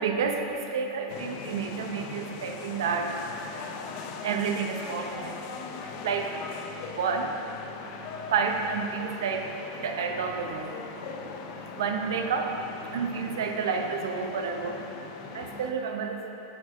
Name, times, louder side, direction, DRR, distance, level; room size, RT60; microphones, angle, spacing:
voice 1, 0.0-16.3, right 5 dB, 85° right, 4 dB, 0.8 m, -31 dB
sound 1, 1.1-15.7, left 5 dB, 50° left, 0.5 m, -40 dB
6.5 x 4.6 x 6.2 m, 2.9 s
supercardioid pair, 145°, 2 cm